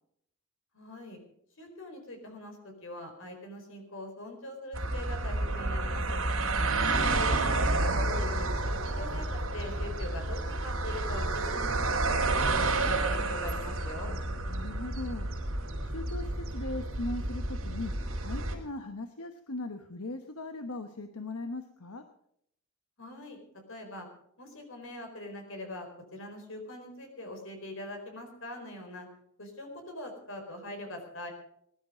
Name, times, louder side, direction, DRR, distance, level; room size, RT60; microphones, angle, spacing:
voice 1, 0.7-1.2 1.6-6.2 6.9-12.2 12.5-14.1 23.0-23.4 23.7-24.1 24.4-29.1 29.4-31.3, left 1 dB, 65° left, 3 dB, 4.6 m, -42 dB
sound 1, 4.7-18.5, right 2 dB, 70° right, 4.2 m, -30 dB
voice 2, 6.6-7.1 14.0-15.3 15.8-17.9 18.2-22.0, left 2 dB, 85° left, 7 dB, 1.2 m, -39 dB
20.5 x 12.0 x 5.2 m, 0.72 s
head